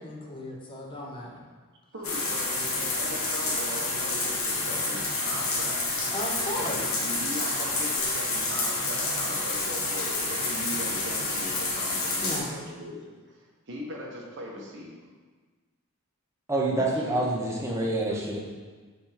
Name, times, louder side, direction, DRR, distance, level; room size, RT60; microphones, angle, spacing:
voice 1, 0.0-1.4 6.1-6.8 12.2-12.5, left 1 dB, 25° left, -2 dB, 0.8 m, -36 dB
voice 2, 1.9-5.8 6.5-13.0 13.3-13.4 13.7-14.9 16.7-17.2 18.1-18.2, equal, 55° right, -2 dB, 1.1 m, -39 dB
sound 1, 2.0-12.4, left 2 dB, 65° left, 1.3 m, -29 dB
voice 3, 16.5-18.4, right 2 dB, 15° right, -2 dB, 0.8 m, -27 dB
5.7 x 3.5 x 5.0 m, 1.4 s
head